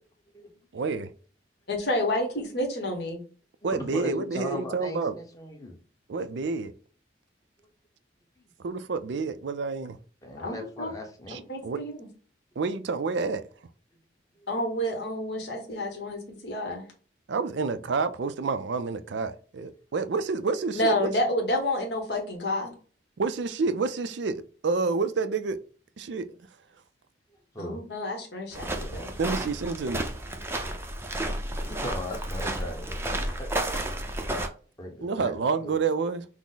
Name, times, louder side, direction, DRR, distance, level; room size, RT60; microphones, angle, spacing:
voice 1, 0.7-1.1 3.6-5.2 6.1-6.7 8.6-10.0 11.3-11.8 12.6-13.5 17.3-21.1 23.2-25.6 26.0-26.3 29.2-30.0 35.0-36.3, right 4 dB, 70° right, 0.4 m, -29 dB
voice 2, 1.7-3.2 10.4-10.9 11.5-12.0 14.5-16.9 20.7-22.7 27.6-29.1, left 1 dB, 60° left, 1.2 m, -29 dB
voice 3, 3.6-5.7 10.2-11.4 14.4-14.5 27.5-27.8 30.4-30.6 31.5-33.5 34.8-35.8, equal, 20° left, 1.0 m, -38 dB
sound 1, 28.5-34.5, right 1 dB, 15° right, 0.5 m, -32 dB
6.0 x 2.1 x 3.9 m
head